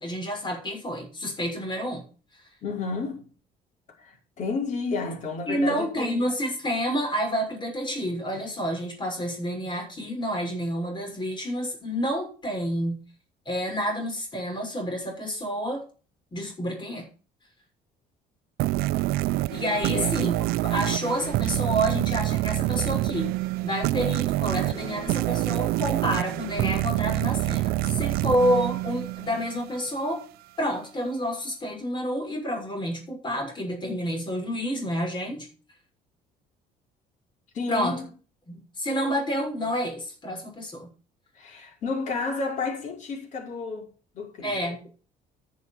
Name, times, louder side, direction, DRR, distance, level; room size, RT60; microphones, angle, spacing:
voice 1, 0.0-2.1 5.5-13.0 13.5-15.8 16.3-17.1 19.5-20.4 20.6-23.3 23.6-30.2 30.6-35.5 37.7-38.0 38.5-40.9 44.4-44.8, equal, 30° left, 6.3 m, -29 dB
voice 2, 2.6-3.3 4.0-6.3 19.9-20.2 37.5-38.1 41.3-44.6, left 4 dB, 50° left, 5.3 m, -31 dB
sound 1, 18.6-29.8, right 18 dB, 85° right, 0.5 m, -26 dB
11.0 x 7.1 x 7.5 m
cardioid pair, 125°, 16 cm